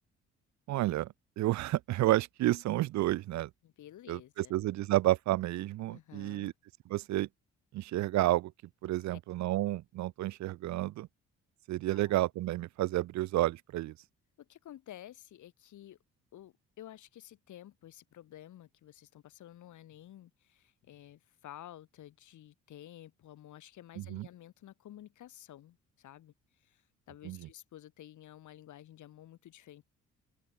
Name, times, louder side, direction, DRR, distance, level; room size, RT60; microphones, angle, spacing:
voice 1, 0.7-3.5 4.1-6.5 6.9-7.3 7.7-8.5 8.8-11.1 11.7-13.9 24.0-24.3 27.2-27.5, right 16 dB, 65° right, 0.5 m, -31 dB
voice 2, 3.6-4.5 5.9-6.5 9.1-9.2 11.9-12.1 14.4-16.0 16.3-26.3 26.6-29.8, left 12 dB, 75° left, 4.3 m, -52 dB
open air
cardioid pair, 90°, 30 cm